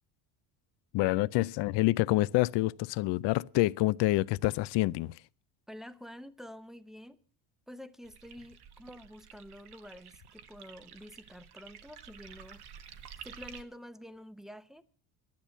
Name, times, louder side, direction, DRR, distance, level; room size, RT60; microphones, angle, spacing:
voice 1, 0.9-5.1, left 19 dB, 60° left, 0.5 m, -27 dB
voice 2, 5.7-7.2 7.7-12.6 13.2-14.9, equal, ahead, 0.8 m, -48 dB
sound 1, 8.0-13.6, right 8 dB, 55° right, 1.4 m, -51 dB
12.0 x 10.5 x 7.2 m
cardioid pair, 110°, 48 cm